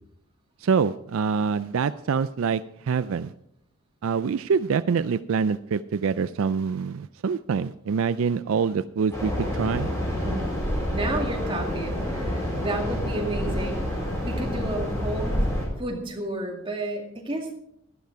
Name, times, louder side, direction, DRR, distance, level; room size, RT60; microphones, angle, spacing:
voice 1, 0.6-3.3 4.0-9.9, right 6 dB, 70° right, 14 dB, 0.4 m, -25 dB
mussel-rock-waves-hires, 9.1-15.7, equal, 15° left, 4.6 m, -28 dB
voice 2, 10.2-13.8 14.2-15.4 15.8-17.6, right 1 dB, 25° right, 1 dB, 2.1 m, -32 dB
13.0 x 12.0 x 4.6 m, 0.73 s
head